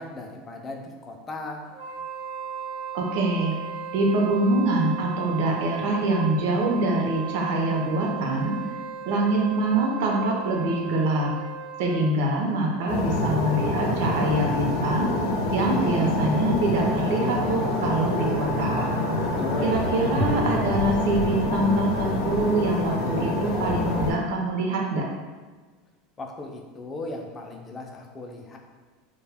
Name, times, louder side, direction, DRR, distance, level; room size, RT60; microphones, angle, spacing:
voice 1, 0.0-1.7 19.4-19.8 26.2-28.6, left 2 dB, 20° left, 1 dB, 0.3 m, -36 dB
Wind instrument woodwind instrument, 1.7-12.3, right 7 dB, 85° right, 0.9 m, -36 dB
voice 2, 2.9-3.5 3.9-8.5 9.1-11.3 11.8-15.1 15.5-18.9 19.6-25.0, right 2 dB, 65° right, -1 dB, 0.5 m, -24 dB
sound 1, 12.9-24.1, left 1 dB, 85° left, 0.5 m, -26 dB
2.1 x 2.0 x 3.4 m, 1.4 s
supercardioid pair, 155°, 0 cm